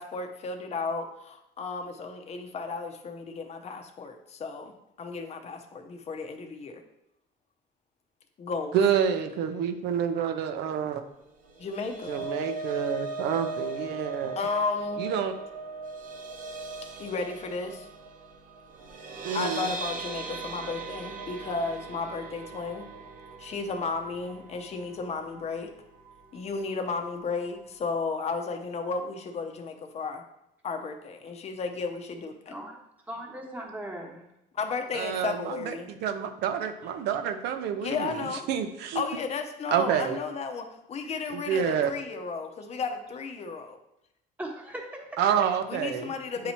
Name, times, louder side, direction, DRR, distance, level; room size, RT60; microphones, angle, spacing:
voice 1, 0.0-6.8 8.4-8.8 11.6-12.2 14.4-15.0 17.0-17.9 19.3-22.8 23.4-25.7 26.3-30.2 30.6-32.5 34.5-35.9 37.8-38.4 38.9-43.8 45.7-46.5, left 4 dB, 40° left, 5 dB, 0.7 m, -33 dB
voice 2, 8.7-11.0 12.1-14.4 15.0-15.3 19.2-19.7 34.9-39.0 39.7-40.2 41.3-41.9 45.2-46.1 46.4-46.5, right 8 dB, 85° right, 8 dB, 0.6 m, -28 dB
sound 1, 11.5-25.7 26.1-26.3 26.6-26.7, right 3 dB, 55° right, 0.8 m, -38 dB
voice 3, 33.1-34.3 44.4-45.1, right 1 dB, 10° right, -1 dB, 1.2 m, -38 dB
8.4 x 2.8 x 4.3 m, 0.84 s
cardioid pair, 110°, 17 cm